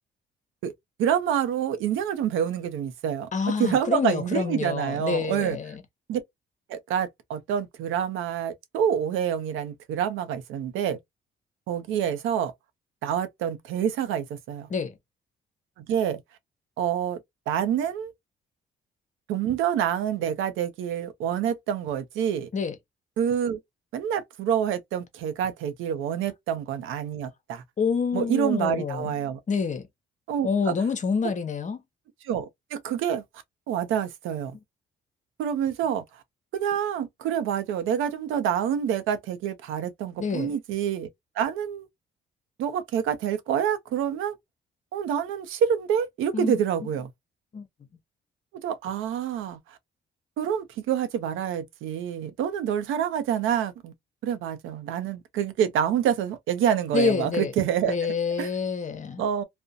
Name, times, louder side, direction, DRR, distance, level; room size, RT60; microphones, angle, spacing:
voice 1, 1.0-3.3 3.6-5.6 6.1-6.2 6.7-11.0 11.7-12.5 13.0-14.7 15.8-16.2 16.8-17.2 17.5-18.1 19.3-22.5 23.2-23.6 23.9-27.6 28.1-29.4 30.3-30.7 32.2-33.2 33.7-34.5 35.4-36.0 36.5-41.1 41.4-41.9 42.6-44.4 44.9-47.1 48.6-49.8 50.4-53.9 54.2-58.5 59.2-59.4, right 9 dB, 90° right, 0.6 m, -27 dB
voice 2, 3.3-5.8 14.7-14.9 22.5-22.7 27.8-29.1 29.5-29.9 30.4-31.8 40.2-40.6 46.3-46.6 47.5-47.7 56.9-57.5 57.9-59.2, left 5 dB, 40° left, 0.8 m, -27 dB
2.4 x 2.1 x 2.5 m
cardioid pair, 90°, 20 cm